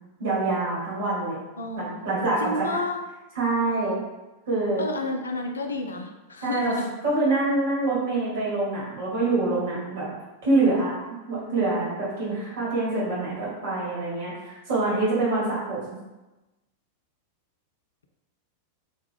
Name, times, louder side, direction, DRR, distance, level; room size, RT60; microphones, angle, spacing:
voice 1, 0.2-1.4 1.8-2.6 3.4-4.0 4.5-4.8 6.4-6.7 7.0-10.1 10.4-10.9 11.3-15.9, right 2 dB, 55° right, -6 dB, 1.3 m, -25 dB
voice 2, 1.6-3.0 4.8-6.9, left 2 dB, 75° left, 3 dB, 0.3 m, -31 dB
3.1 x 2.2 x 3.3 m, 1.1 s
figure-of-eight pair, 90°, 0 cm